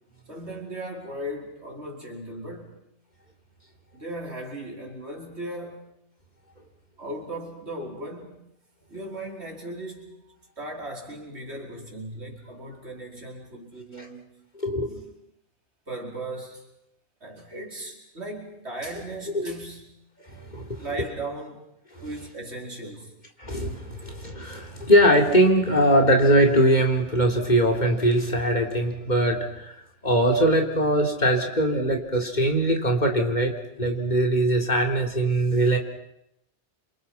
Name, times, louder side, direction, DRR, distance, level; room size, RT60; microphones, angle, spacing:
voice 1, 0.3-2.8 3.9-5.9 7.0-8.4 8.9-14.3 14.9-15.1 15.9-16.7 17.2-20.0 20.7-21.6 22.0-23.1, right 1 dB, 70° right, 0 dB, 5.1 m, -37 dB
voice 2, 14.6-14.9 19.3-19.4 20.2-20.8 21.9-22.1 23.4-29.7 30.0-35.8, right 1 dB, 40° left, 2 dB, 3.8 m, -21 dB
29.5 x 26.5 x 5.8 m, 0.79 s
omnidirectional pair, 1.2 m